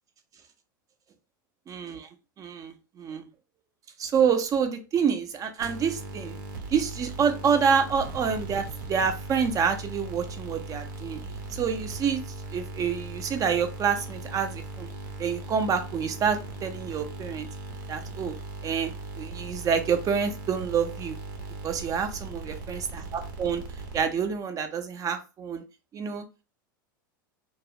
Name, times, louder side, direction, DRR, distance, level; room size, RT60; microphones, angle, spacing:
voice 1, 1.7-2.1 2.4-3.3 4.0-6.4 6.7-11.2 11.5-12.2 12.5-14.9 15.2-17.5 17.9-18.3 18.6-21.2 21.6-23.6 23.9-25.6 25.9-26.2, right 6 dB, 30° right, 8 dB, 0.4 m, -27 dB
sound 1, 5.6-24.4, right 2 dB, 80° right, 0.7 m, -39 dB
2.3 x 2.1 x 2.7 m, 0.31 s
hypercardioid pair, 100°, 11 cm